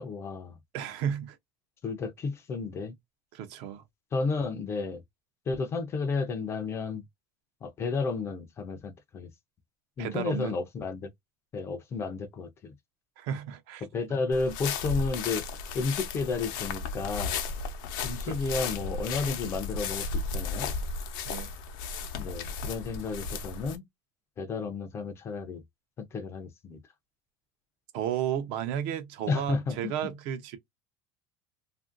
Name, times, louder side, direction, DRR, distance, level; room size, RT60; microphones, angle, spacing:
voice 1, 0.0-0.6 1.8-2.9 4.1-5.0 5.5-7.0 7.6-9.3 10.0-11.1 11.5-12.7 13.8-15.5 15.7-17.4 18.0-20.7 22.2-23.8 24.4-25.6 26.0-26.8 29.3-30.1, left 4 dB, 25° left, 0.4 m, -32 dB
voice 2, 0.7-1.4 3.3-3.8 10.0-10.5 13.2-13.9 18.3-18.4 21.3-21.5 27.9-30.6, right 9 dB, 60° right, 0.6 m, -33 dB
sound 1, 14.3-23.8, left 4 dB, 80° left, 0.6 m, -34 dB
2.8 x 2.5 x 2.4 m
cardioid pair, 165°, 11 cm